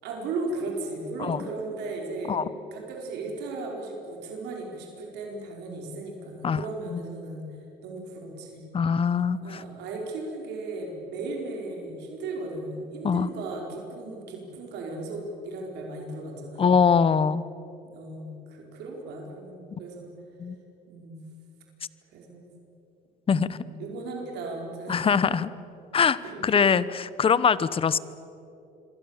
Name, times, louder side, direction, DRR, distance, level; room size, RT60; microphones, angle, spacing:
voice 1, 0.0-2.4 2.7-7.5 7.8-8.6 9.4-16.7 17.9-20.1 20.9-21.2 22.1-22.5 23.6-25.0 26.2-26.7, right 2 dB, 85° right, 0 dB, 4.7 m, -36 dB
voice 2, 8.7-9.6 13.0-13.3 16.6-17.4 20.4-20.6 23.3-23.6 24.9-25.5 25.9-28.0, left 6 dB, 35° left, 17 dB, 0.9 m, -23 dB
27.0 x 23.0 x 7.4 m, 2.8 s
cardioid pair, 110°, 17 cm